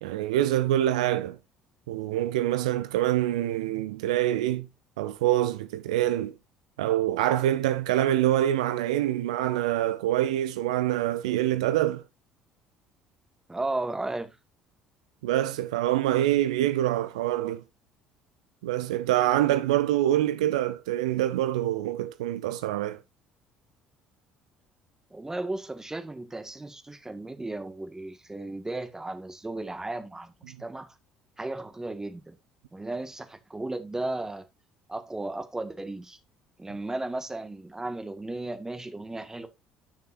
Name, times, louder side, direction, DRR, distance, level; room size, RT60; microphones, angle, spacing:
voice 1, 0.0-1.4 1.9-4.7 5.0-6.3 6.8-12.0 15.2-17.6 18.6-23.0, right 13 dB, 75° right, 0.5 m, -25 dB
voice 2, 13.5-14.4 25.1-30.3 30.6-30.9 31.4-32.4 32.7-34.4 34.9-36.2 36.6-39.5, right 2 dB, 15° right, 1.7 m, -35 dB
11.0 x 6.6 x 2.6 m
figure-of-eight pair, 55°, 4 cm